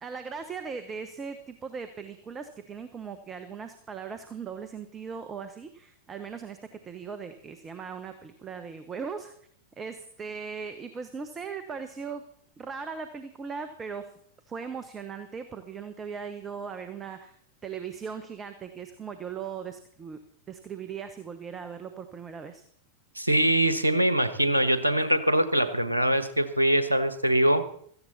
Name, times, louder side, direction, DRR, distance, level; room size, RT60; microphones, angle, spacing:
voice 1, 0.0-6.6 6.8-9.3 9.8-12.2 12.6-14.1 14.5-17.4 17.6-20.2 20.5-22.6, right 6 dB, 20° right, 10 dB, 1.1 m, -38 dB
voice 2, 23.2-27.6, right 1 dB, 85° right, 11 dB, 1.3 m, -23 dB
17.0 x 14.5 x 4.2 m, 0.64 s
figure-of-eight pair, 90°, 0 cm